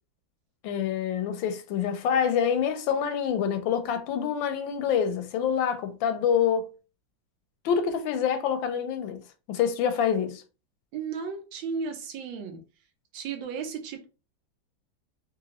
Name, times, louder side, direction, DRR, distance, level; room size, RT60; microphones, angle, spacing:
voice 1, 0.6-6.7 7.6-9.2 9.5-10.4, left 8 dB, 85° left, 1.3 m, -26 dB
voice 2, 10.9-12.6 13.1-14.1, right 5 dB, 85° right, 1.6 m, -34 dB
3.9 x 2.5 x 2.9 m
omnidirectional pair, 2.1 m